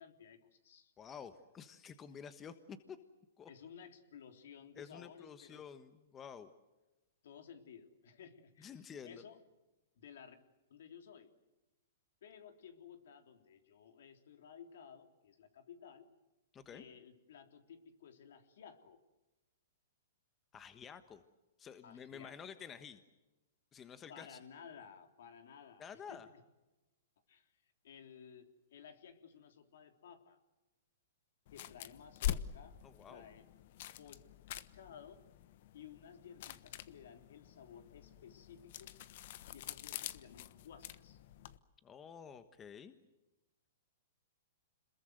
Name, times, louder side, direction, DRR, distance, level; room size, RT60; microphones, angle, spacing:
voice 1, 0.0-0.9 3.5-5.6 7.2-8.7 9.0-9.4 10.0-10.4 10.7-11.3 12.2-16.1 16.7-19.0 21.8-22.3 24.1-26.2 27.3-27.5 27.8-30.4 31.5-32.8 33.1-33.4 34.0-34.2 34.7-35.2 35.7-38.9 39.5-41.2, left 7 dB, 70° left, 6 dB, 3.4 m, -55 dB
voice 2, 1.0-3.0 3.4-3.5 4.8-6.5 8.6-9.2 16.5-16.9 20.5-21.2 21.6-23.0 23.7-24.4 25.8-26.3 32.8-33.2 41.8-42.9, left 7 dB, 20° left, 11 dB, 1.3 m, -51 dB
sound 1, 31.5-41.6, left 12 dB, 55° left, 1.2 m, -45 dB
27.0 x 21.5 x 8.0 m, 1.0 s
hypercardioid pair, 140°, 0 cm